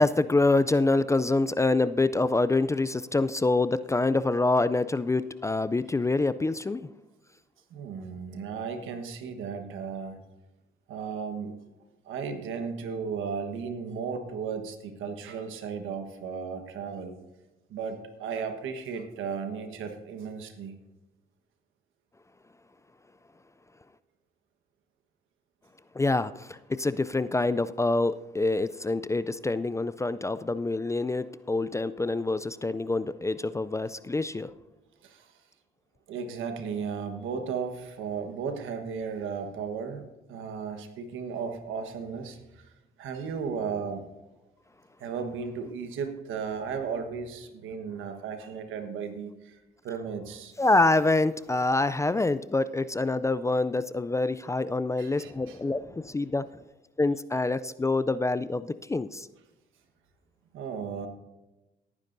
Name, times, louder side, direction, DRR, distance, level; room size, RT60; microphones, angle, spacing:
voice 1, 0.0-6.9 25.9-34.5 50.6-56.6 57.0-59.3, left 2 dB, 15° left, 15 dB, 0.3 m, -26 dB
voice 2, 7.7-10.2 10.9-11.6 12.0-17.2 17.7-20.7 35.0-35.3 36.1-42.7 43.0-44.0 45.0-50.5 55.0-55.6 60.5-61.1, right 6 dB, 85° right, 7 dB, 1.3 m, -35 dB
18.5 x 9.9 x 2.6 m, 1.0 s
cardioid pair, 90°, 20 cm